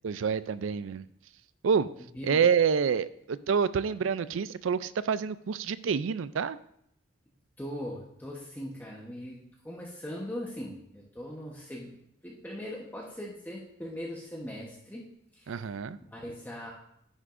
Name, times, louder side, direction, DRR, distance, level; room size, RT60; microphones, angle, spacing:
voice 1, 0.0-1.1 1.6-1.9 2.2-6.6 15.5-16.0, right 6 dB, 75° right, 16 dB, 0.4 m, -27 dB
voice 2, 2.0-2.5 7.6-15.1 15.3-15.6 16.0-16.7, equal, 10° left, -4 dB, 1.0 m, -40 dB
10.5 x 9.8 x 2.6 m, 0.74 s
head